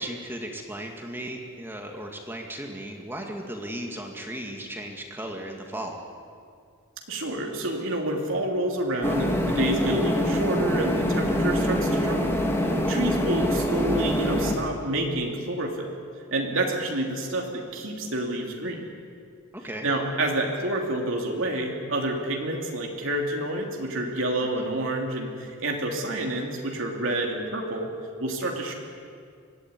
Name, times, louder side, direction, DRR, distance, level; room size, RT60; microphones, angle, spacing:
voice 1, 0.0-6.0 19.5-19.9 24.4-24.5, right 1 dB, 10° right, 2 dB, 2.1 m, -36 dB
voice 2, 7.1-12.3 12.9-15.9 16.3-18.8 19.8-27.9 28.2-28.7, right 1 dB, 60° right, 0 dB, 3.2 m, -28 dB
sound 1, 9.0-14.6, equal, 10° left, 2.4 m, -25 dB
25.0 x 17.0 x 9.7 m, 2.2 s
head